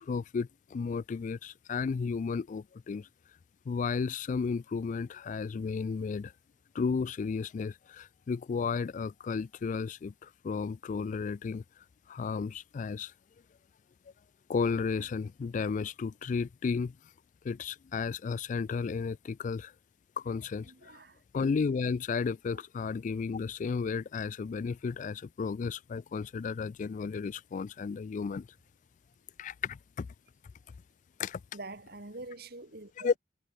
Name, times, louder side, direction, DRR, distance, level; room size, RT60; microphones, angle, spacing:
voice 1, 0.0-3.1 3.7-6.3 6.7-11.6 12.1-13.1 14.5-17.0 17.4-19.7 20.2-20.9 21.3-28.5 29.4-30.1 31.2-31.4 33.0-33.1, left 5 dB, 45° left, 0.3 m, -33 dB
voice 2, 20.6-21.2 22.5-22.6 31.5-33.2, right 2 dB, 60° right, 3.3 m, -45 dB
head